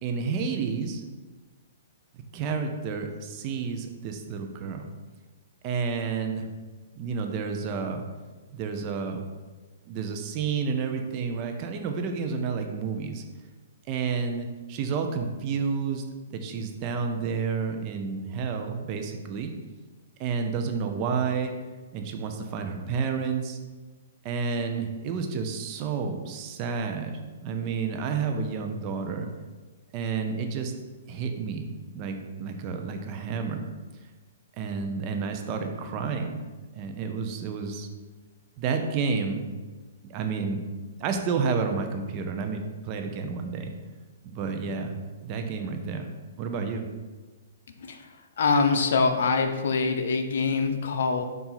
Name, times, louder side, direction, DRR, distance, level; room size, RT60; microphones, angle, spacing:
voice 1, 0.0-1.0 2.3-4.9 5.6-6.5 7.0-8.0 8.5-9.2 9.8-13.2 13.9-16.0 16.3-19.5 20.2-21.5 21.9-23.6 24.2-29.3 29.9-30.7 31.1-31.7 31.9-33.6 34.6-36.4 36.7-37.9 38.6-39.4 40.1-40.7 41.0-43.7 44.2-44.9 45.2-46.1 46.4-46.9, right 5 dB, 30° right, 5 dB, 0.7 m, -30 dB
voice 2, 48.4-51.2, left 4 dB, 65° left, 6 dB, 0.7 m, -24 dB
7.0 x 2.7 x 5.8 m, 1.3 s
hypercardioid pair, 155°, 0 cm